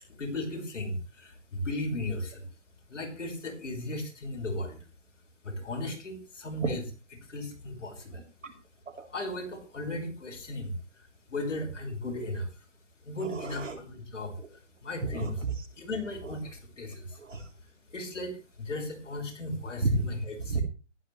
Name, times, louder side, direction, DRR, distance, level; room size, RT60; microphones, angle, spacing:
voice 1, 0.2-2.4 2.9-4.8 5.4-6.8 7.3-8.2 9.1-10.8 11.3-12.5 13.0-14.3 14.8-15.4 15.8-17.0 17.9-20.6, left 1 dB, 75° left, 3 dB, 5.7 m, -36 dB
voice 2, 8.1-8.5 9.0-9.1 13.2-13.8 14.4-14.5 15.0-15.7 17.2-17.4 19.8-20.1 20.5-20.6, right 3 dB, 80° right, 4 dB, 3.8 m, -31 dB
14.5 x 11.0 x 3.3 m, 0.33 s
hypercardioid pair, 145°, 37 cm